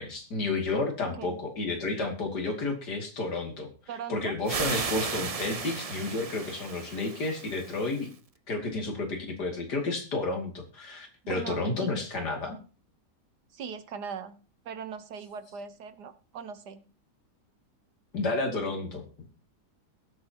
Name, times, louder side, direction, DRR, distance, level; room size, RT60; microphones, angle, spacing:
voice 1, 0.0-3.7 4.1-8.1 8.5-12.6 18.1-19.3, left 3 dB, 75° left, 3 dB, 3.2 m, -31 dB
voice 2, 3.9-4.8 11.2-11.9 13.5-14.4 14.6-16.8, right 7 dB, 75° right, 11 dB, 1.7 m, -40 dB
sound 1, 4.5-8.1, right 5 dB, 45° right, 0.4 m, -35 dB
21.5 x 8.2 x 2.9 m, 0.38 s
omnidirectional pair, 1.8 m